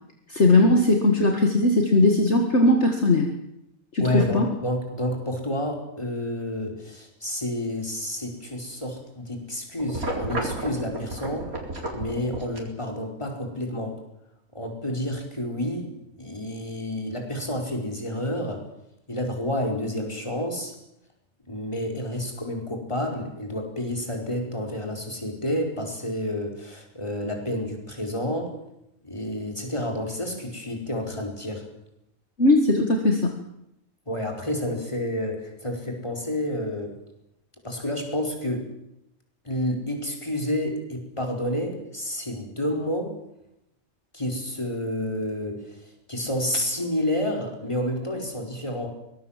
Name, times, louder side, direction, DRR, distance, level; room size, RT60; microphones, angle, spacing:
voice 1, 0.3-3.3 3.9-4.5 32.4-33.4, left 2 dB, 55° left, 3 dB, 2.2 m, -19 dB
voice 2, 4.0-11.5 11.9-14.0 14.5-18.6 19.1-20.7 21.5-28.5 29.0-31.6 34.1-37.0 37.6-38.7 39.4-43.1 44.1-48.9, left 1 dB, 20° left, 2 dB, 4.8 m, -29 dB
sound 1, 9.8-12.6, right 1 dB, 90° right, 4.5 m, -32 dB
24.0 x 20.0 x 7.4 m, 0.81 s
omnidirectional pair, 1.5 m